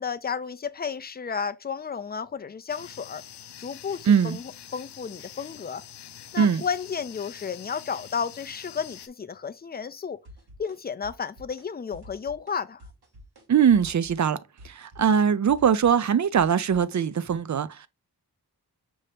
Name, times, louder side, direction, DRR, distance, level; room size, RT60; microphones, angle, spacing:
voice 1, 0.0-3.2 3.6-5.8 6.3-10.2 10.6-12.8, left 6 dB, 25° left, 0.4 m, -32 dB
sound 1, 2.7-9.1, left 10 dB, 90° left, 0.5 m, -45 dB
voice 2, 4.1-4.4 6.4-6.6 13.5-14.4 14.6-17.9, right 7 dB, 50° right, 0.4 m, -21 dB
sound 2, 10.2-10.8 11.0-11.7 11.9-12.5 12.8-13.4 13.7-17.4, left 1 dB, 75° right, 1.6 m, -48 dB
5.4 x 2.8 x 3.3 m
wide cardioid pair, 80°, 39 cm